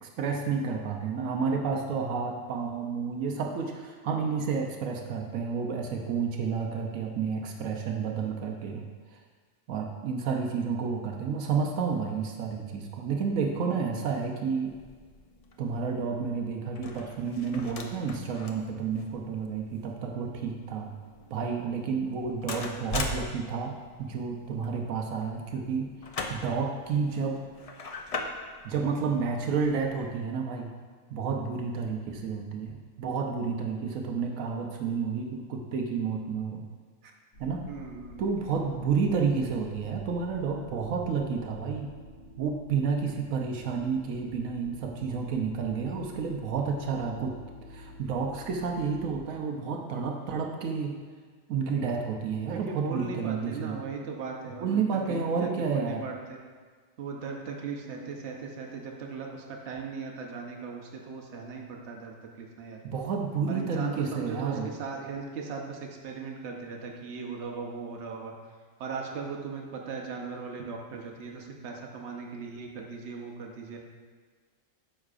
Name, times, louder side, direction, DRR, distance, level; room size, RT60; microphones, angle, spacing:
voice 1, 0.0-8.8 9.1-9.2 9.7-14.7 15.6-20.9 21.3-23.7 24.0-25.9 26.3-27.4 28.6-30.7 31.1-36.6 37.4-37.6 38.2-41.9 42.4-47.4 47.7-51.0 51.5-53.8 54.6-56.0 62.8-64.7, right 5 dB, 85° right, 2 dB, 1.1 m, -30 dB
sound 1, 14.7-30.1, left 3 dB, 65° left, 0.3 m, -41 dB
sound 2, 37.3-49.1, left 2 dB, 40° left, 1.6 m, -49 dB
voice 2, 37.7-38.2 52.5-56.4 57.0-62.8 63.5-68.3 68.8-73.8, right 5 dB, 60° right, 0 dB, 1.1 m, -38 dB
9.4 x 6.4 x 2.5 m, 1.5 s
omnidirectional pair, 1.4 m